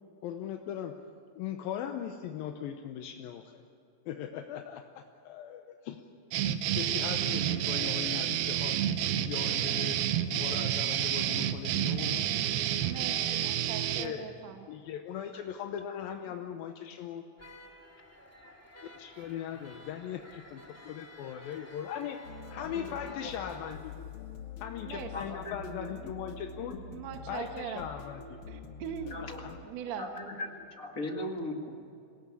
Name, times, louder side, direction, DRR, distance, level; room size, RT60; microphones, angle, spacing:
voice 1, 0.2-0.9 1.4-3.6 4.1-6.0 6.7-8.8 9.2-10.0 10.3-12.3 13.8-14.3 14.7-17.2 18.9-23.9 24.6-26.8 27.3-28.5, left 9 dB, 80° left, 5 dB, 2.6 m, -39 dB
sound 1, 6.3-14.1, right 11 dB, 80° right, 2.8 m, -30 dB
voice 2, 12.8-14.7 24.8-25.1 26.9-27.8 28.5-29.2 29.6-30.1, right 7 dB, 60° right, 5 dB, 2.1 m, -40 dB
sound 2, 17.4-23.7, left 1 dB, 5° left, 1.5 m, -52 dB
sound 3, 22.2-29.6, left 4 dB, 55° left, 1.5 m, -46 dB
voice 3, 23.2-23.5 24.0-24.3 25.1-25.9 26.7-26.8 29.1-29.5 30.0-31.9, left 1 dB, 35° left, 3 dB, 1.5 m, -39 dB
27.0 x 18.5 x 8.4 m, 2.5 s
omnidirectional pair, 4.3 m